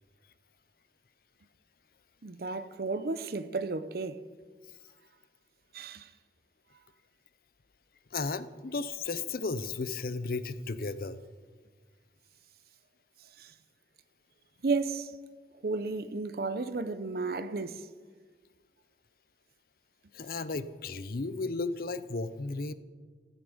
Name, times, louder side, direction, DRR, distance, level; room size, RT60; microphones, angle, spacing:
voice 1, 2.2-4.2 5.7-6.1 13.4-13.5 14.6-15.2 15.6-17.9, right 3 dB, 55° right, 0.6 m, -33 dB
voice 2, 8.1-11.2 20.1-22.7, left 3 dB, 55° left, 0.6 m, -34 dB
15.5 x 11.5 x 5.0 m
head